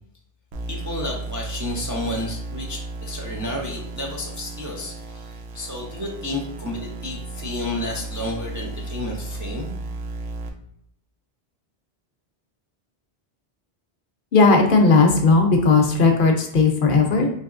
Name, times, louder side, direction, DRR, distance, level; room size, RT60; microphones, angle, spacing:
sound 1, 0.5-10.5, right 2 dB, 85° right, 0.9 m, -34 dB
voice 1, 0.7-9.8, left 1 dB, 30° right, -2 dB, 0.3 m, -31 dB
voice 2, 14.3-17.3, left 3 dB, 60° left, 3 dB, 0.7 m, -16 dB
4.1 x 2.9 x 2.4 m, 0.72 s
omnidirectional pair, 1.1 m